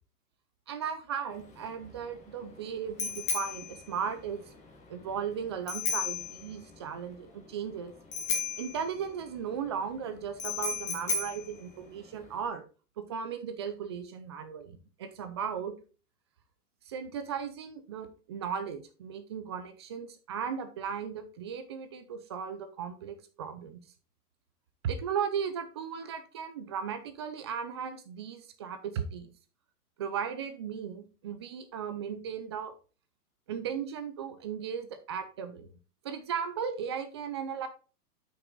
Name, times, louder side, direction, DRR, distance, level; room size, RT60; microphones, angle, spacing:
voice 1, 0.7-4.4 4.9-7.9 8.6-12.6 13.0-15.7 16.9-23.8 24.8-29.3 30.0-32.7 33.5-35.7 36.0-37.7, right 7 dB, 20° right, 9 dB, 0.4 m, -36 dB
Bicycle bell, 1.3-12.5, left 4 dB, 15° left, 1.7 m, -36 dB
8.1 x 6.1 x 3.9 m, 0.36 s
hypercardioid pair, 140°, 47 cm